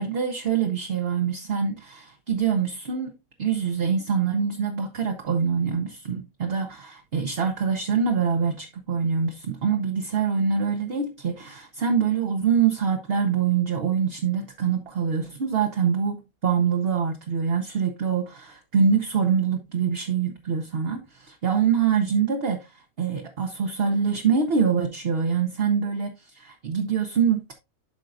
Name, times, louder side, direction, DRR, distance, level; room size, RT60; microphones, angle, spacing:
voice 1, 0.0-3.1 3.4-27.5, right 6 dB, 50° right, 1.0 m, -25 dB
11.5 x 4.5 x 2.5 m
omnidirectional pair, 1.5 m